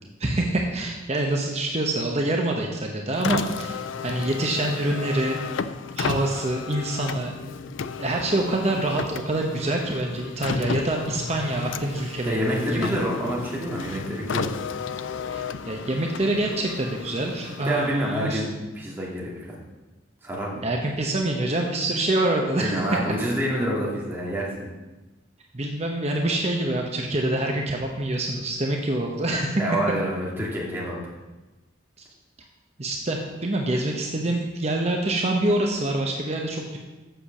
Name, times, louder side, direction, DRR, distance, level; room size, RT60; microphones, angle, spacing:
voice 1, 0.2-5.4 6.0-7.4 8.0-13.0 15.3-18.4 20.6-23.0 25.5-29.6 32.8-36.8, right 1 dB, 35° right, 1 dB, 0.9 m, -26 dB
Car, 3.1-18.5, left 6 dB, 80° left, 0.4 m, -33 dB
voice 2, 12.3-14.5 17.6-18.5 18.7-19.5 20.2-20.6 22.6-24.7 29.6-31.0, equal, 10° right, -5 dB, 2.4 m, -27 dB
7.9 x 6.7 x 7.1 m, 1.1 s
head